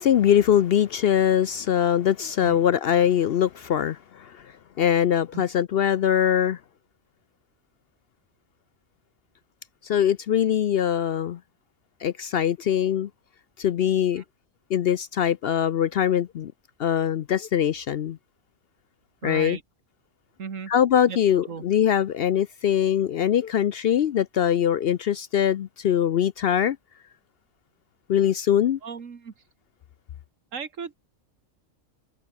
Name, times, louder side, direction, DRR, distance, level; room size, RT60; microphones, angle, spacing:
voice 1, 0.0-6.6 9.8-11.4 12.0-13.1 13.6-14.2 14.7-16.5 16.8-18.2 19.2-19.6 20.7-26.8 28.1-28.8, left 9 dB, 60° left, 0.7 m, -22 dB
voice 2, 19.2-19.6 20.4-20.7 21.1-21.2 21.5-21.6 28.8-29.3 30.5-30.9, right 6 dB, 75° right, 2.0 m, -35 dB
omnidirectional pair, 1.3 m